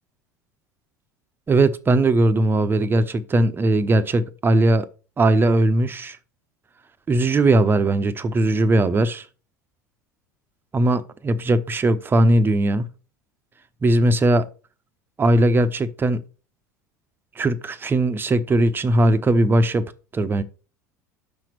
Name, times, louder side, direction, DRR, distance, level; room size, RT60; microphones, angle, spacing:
voice 1, 1.5-4.9 5.2-6.2 7.1-9.2 10.7-12.9 13.8-14.4 15.2-16.2 17.4-19.8 20.1-20.4, right 2 dB, 20° right, 1.0 m, -19 dB
6.9 x 6.0 x 6.6 m
figure-of-eight pair, 75°, 10 cm